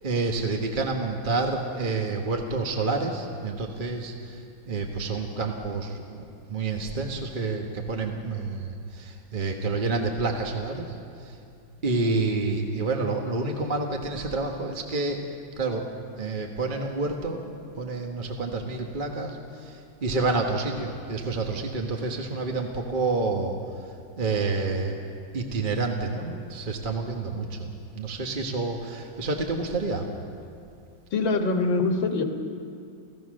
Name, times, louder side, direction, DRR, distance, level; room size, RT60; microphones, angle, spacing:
voice 1, 0.0-4.4 4.7-11.0 11.2-11.4 11.8-15.3 15.6-15.9 16.2-17.5 17.8-23.6 23.8-25.0 25.3-30.1, right 3 dB, 30° right, 2 dB, 1.2 m, -29 dB
voice 2, 31.1-32.2, left 3 dB, 75° left, 4 dB, 2.2 m, -24 dB
29.0 x 16.0 x 6.4 m, 2.4 s
omnidirectional pair, 2.1 m